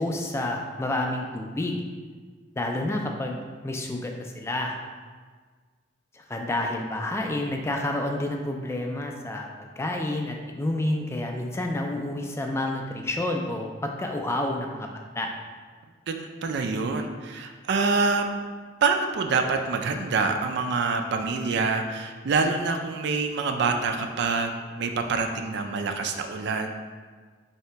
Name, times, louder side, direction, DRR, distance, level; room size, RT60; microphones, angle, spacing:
voice 1, 0.0-1.8 2.6-4.7 6.1-14.9 15.2-15.3, left 1 dB, 15° left, 2 dB, 0.3 m, -29 dB
voice 2, 16.1-18.3 18.8-26.7, right 4 dB, 65° right, 5 dB, 0.4 m, -26 dB
3.2 x 2.8 x 4.4 m, 1.5 s
head